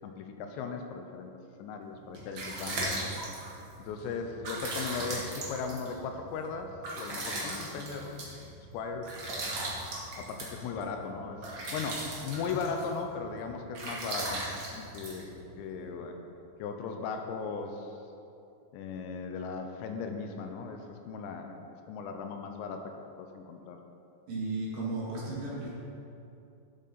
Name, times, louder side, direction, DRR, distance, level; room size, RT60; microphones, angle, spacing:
voice 1, 0.0-1.3 1.6-3.2 3.8-8.1 8.7-9.1 10.2-11.5 11.7-15.3 15.6-16.1 16.6-18.0 18.7-21.6 21.9-22.9 23.2-23.8, left 5 dB, 85° left, 5 dB, 2.9 m, -37 dB
sound 1, 1.9-15.9, right 2 dB, 85° right, 1.1 m, -38 dB
voice 2, 24.3-25.7, right 2 dB, 60° right, -6 dB, 3.5 m, -34 dB
12.0 x 7.6 x 4.1 m, 2.7 s
omnidirectional pair, 5.2 m